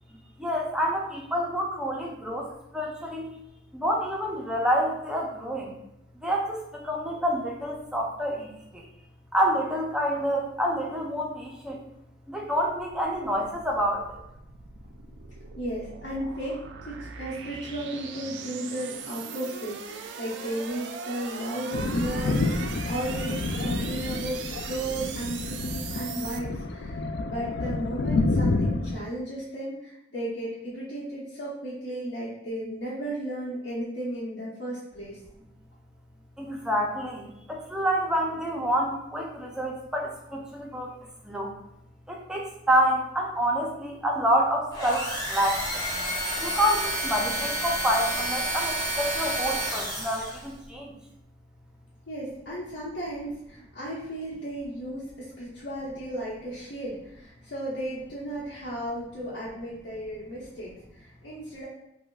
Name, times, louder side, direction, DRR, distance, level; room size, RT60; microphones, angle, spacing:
voice 1, 0.4-3.3 3.7-5.7 6.2-8.9 9.3-11.8 12.3-14.2 36.4-41.0 41.2-41.5 42.1-45.6 46.4-50.9, equal, 5° right, -1 dB, 0.4 m, -28 dB
sound 1, 13.2-26.4, right 6 dB, 80° right, 0.3 m, -40 dB
voice 2, 15.6-16.6 16.8-35.2 52.1-61.7, right 1 dB, 85° left, -10 dB, 0.9 m, -35 dB
Thunder, 21.7-29.0, left 3 dB, 65° left, 0.3 m, -29 dB
sound 2, 44.7-50.5, right 1 dB, 20° left, 1.4 m, -30 dB
4.8 x 2.1 x 2.3 m, 0.86 s
head